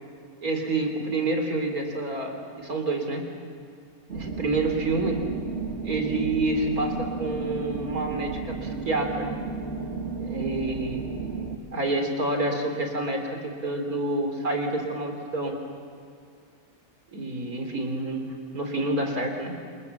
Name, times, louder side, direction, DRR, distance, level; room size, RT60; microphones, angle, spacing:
voice 1, 0.4-2.3 2.6-3.2 4.1-5.2 5.8-9.3 10.2-15.6 17.1-18.3 18.5-19.5, right 2 dB, 80° right, 3 dB, 4.2 m, -28 dB
sound 1, 4.1-11.6, right 4 dB, 50° right, 1.9 m, -33 dB
30.0 x 28.0 x 7.2 m, 2.4 s
omnidirectional pair, 1.5 m